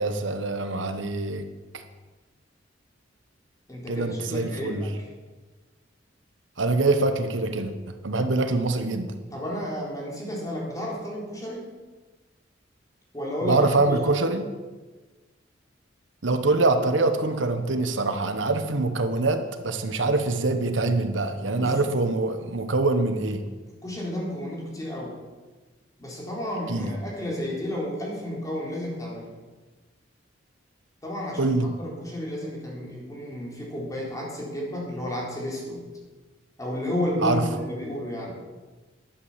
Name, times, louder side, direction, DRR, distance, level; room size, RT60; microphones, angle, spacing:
voice 1, 0.0-1.5 1.7-1.8 3.9-4.8 6.6-7.7 8.0-9.1 13.4-14.4 16.2-23.4 26.7-26.9 31.4-31.7 37.2-37.4, right 2 dB, 75° right, 8 dB, 1.1 m, -24 dB
voice 2, 3.7-5.1 9.3-11.7 13.1-14.1 21.5-21.8 23.8-25.2 26.0-29.3 31.0-35.8 36.6-38.4, left 1 dB, 20° left, -4 dB, 3.9 m, -32 dB
11.5 x 8.6 x 7.3 m, 1.3 s
head